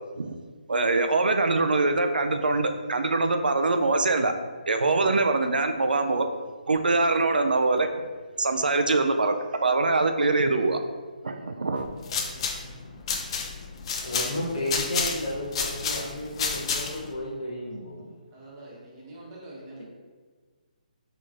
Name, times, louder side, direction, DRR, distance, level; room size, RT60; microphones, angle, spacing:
voice 1, 0.7-4.3 4.7-6.3 6.7-7.9 8.4-9.4 9.6-10.8 11.2-11.9, right 3 dB, 85° right, 7 dB, 0.3 m, -23 dB
sound 1, 11.9-17.1, left 5 dB, 40° left, 0.4 m, -31 dB
voice 2, 12.1-12.5 18.3-19.8, right 1 dB, 30° right, -4 dB, 1.0 m, -45 dB
voice 3, 14.0-18.1, left 1 dB, 55° left, -3 dB, 1.3 m, -33 dB
4.5 x 3.0 x 2.4 m, 1.4 s
hypercardioid pair, 150°, 5 cm